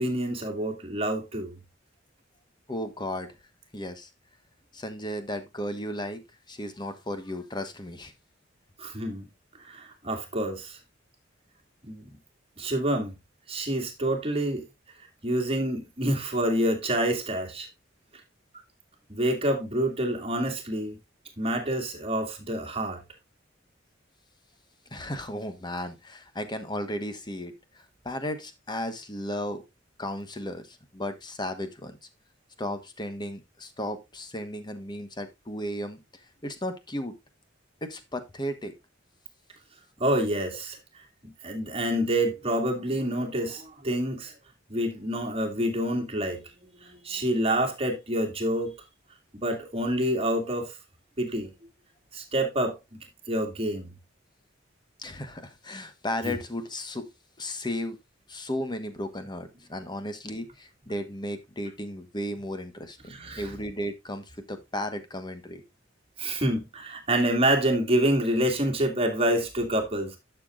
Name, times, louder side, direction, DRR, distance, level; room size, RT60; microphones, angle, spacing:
voice 1, 0.0-1.5 8.8-9.3 9.6-10.8 11.8-12.1 12.6-13.1 13.5-14.6 15.2-17.7 19.1-21.0 21.4-23.0 40.0-40.8 41.4-44.3 44.7-46.4 46.8-48.7 49.3-50.7 51.2-51.5 52.1-52.8 53.3-53.9 56.2-56.4 63.1-63.5 66.2-70.2, right 1 dB, 30° right, 2.4 m, -27 dB
voice 2, 2.7-3.3 3.7-4.1 4.7-6.2 6.5-8.1 24.9-29.6 30.0-32.0 32.6-36.0 36.4-37.1 37.8-38.7 55.0-57.0 57.4-58.0 58.3-65.6, left 1 dB, 25° left, 1.3 m, -34 dB
11.5 x 6.9 x 2.5 m
head